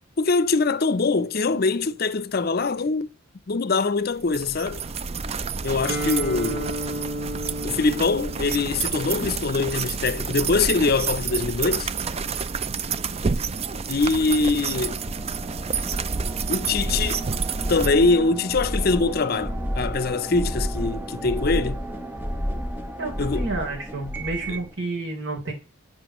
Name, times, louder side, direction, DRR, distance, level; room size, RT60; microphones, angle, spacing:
voice 1, 0.2-3.1 3.5-4.8 5.6-6.8 7.6-11.9 13.9-15.0 16.5-17.2 17.7-21.8 23.2-23.5 24.5-24.6, left 3 dB, 50° left, 0.6 m, -23 dB
sound 1, 4.2-17.9, right 5 dB, 30° right, 0.4 m, -29 dB
Guitar, 5.9-13.6, right 1 dB, 55° right, 2.6 m, -35 dB
sound 2, 14.1-24.7, equal, 10° right, 0.8 m, -31 dB
voice 2, 23.0-25.5, right 2 dB, 90° right, 3.6 m, -30 dB
10.5 x 7.8 x 3.1 m
head